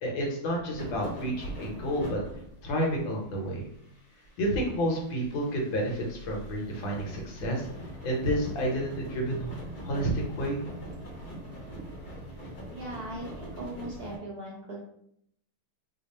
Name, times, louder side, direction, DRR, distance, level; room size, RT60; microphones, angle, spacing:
voice 1, 0.0-2.2 2.6-3.7 4.4-7.7 8.0-9.5 9.8-10.6, equal, 75° left, -1 dB, 1.6 m, -30 dB
sound 1, 0.8-2.9 3.2-3.3 3.7-14.2, equal, 45° left, 0.9 m, -42 dB
voice 2, 12.7-14.8, right 1 dB, 60° right, -4 dB, 1.1 m, -39 dB
3.5 x 2.0 x 4.0 m, 0.70 s
omnidirectional pair, 2.3 m